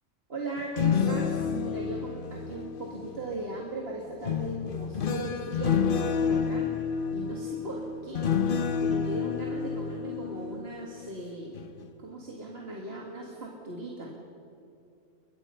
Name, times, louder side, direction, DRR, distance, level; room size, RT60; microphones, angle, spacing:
voice 1, 0.3-6.7 7.1-8.3 8.8-11.7 12.0-14.1, right 2 dB, 50° right, -1 dB, 2.2 m, -38 dB
sound 1, 0.6-3.5 4.2-11.2 11.5-11.9, left 7 dB, 50° left, 0.9 m, -29 dB
22.0 x 21.5 x 5.6 m, 2.7 s
omnidirectional pair, 1.3 m